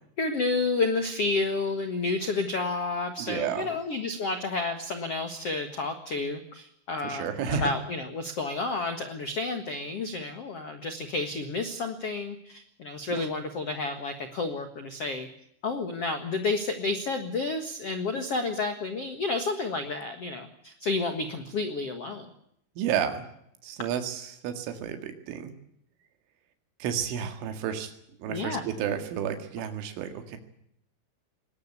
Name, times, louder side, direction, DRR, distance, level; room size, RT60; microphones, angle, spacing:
voice 1, 0.2-15.3 15.6-22.3 28.3-28.6, left 3 dB, 70° left, 8 dB, 1.4 m, -30 dB
voice 2, 3.2-3.7 7.0-7.7 13.2-13.3 22.8-23.3 23.6-25.5 26.8-27.9 28.2-30.4, right 8 dB, 85° right, 7 dB, 4.5 m, -31 dB
21.0 x 19.0 x 8.3 m, 0.72 s
omnidirectional pair, 5.5 m